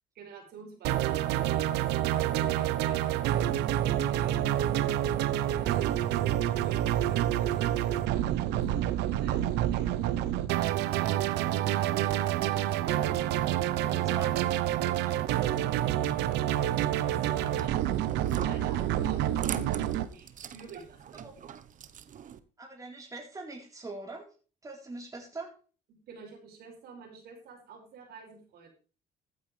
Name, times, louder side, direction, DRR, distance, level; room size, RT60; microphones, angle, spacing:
voice 1, 0.1-4.5 5.3-10.1 10.6-13.0 13.6-14.2 15.3-16.8 17.0-20.3 20.5-21.3 25.9-28.7, right 5 dB, 70° right, 2 dB, 5.7 m, -49 dB
sound 1, 0.8-20.0, right 12 dB, 90° right, 0.9 m, -28 dB
voice 2, 14.1-14.4 21.2-21.3 22.6-24.3 24.6-25.5, right 2 dB, 20° right, 1 dB, 4.0 m, -42 dB
sound 2, 17.2-22.4, right 9 dB, 50° right, 1.1 m, -42 dB
15.0 x 9.6 x 3.3 m, 0.37 s
cardioid pair, 110°, 17 cm